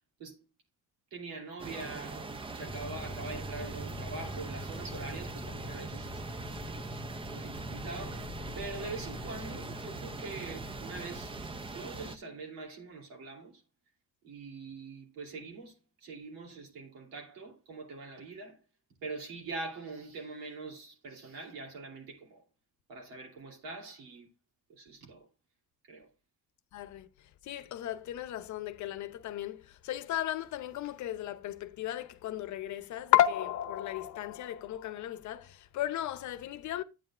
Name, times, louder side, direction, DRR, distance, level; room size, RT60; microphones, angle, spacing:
voice 1, 1.1-6.5 7.3-8.3 8.6-11.3 11.7-13.6 14.2-18.6 19.0-22.4 22.9-24.3 24.7-25.3 25.8-26.1, right 3 dB, 90° right, 2.9 m, -43 dB
sound 1, 1.6-12.2, right 3 dB, 15° right, 0.4 m, -42 dB
sound 2, 2.6-12.0, left 2 dB, 5° left, 2.0 m, -45 dB
voice 2, 26.7-36.8, left 12 dB, 60° left, 0.8 m, -33 dB
9.6 x 8.8 x 2.4 m
cardioid pair, 135°, 34 cm